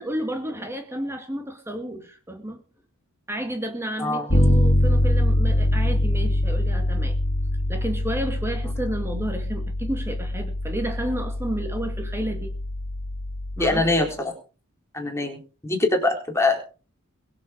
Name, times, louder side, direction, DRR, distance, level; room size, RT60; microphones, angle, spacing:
voice 1, 0.0-2.6 3.3-7.1 7.7-12.5 13.6-13.9, right 1 dB, 10° right, 5 dB, 2.2 m, -31 dB
Bass guitar, 4.3-14.0, left 1 dB, 55° left, 2.8 m, -24 dB
voice 2, 13.6-14.3 14.9-16.6, left 2 dB, 10° left, 1 dB, 4.3 m, -23 dB
22.5 x 7.8 x 5.4 m, 0.37 s
head